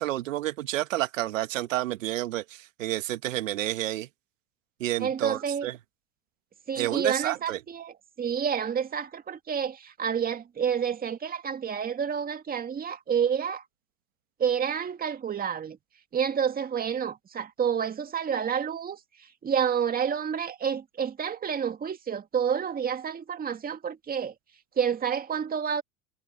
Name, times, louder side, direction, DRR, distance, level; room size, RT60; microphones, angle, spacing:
voice 1, 0.0-4.1 4.8-5.8 6.7-7.6, right 15 dB, 80° right, 1.8 m, -30 dB
voice 2, 5.0-5.7 6.7-13.6 14.4-15.8 16.1-19.0 19.4-24.3 24.8-25.8, right 7 dB, 25° right, 2.2 m, -29 dB
hypercardioid pair, 110°, 38 cm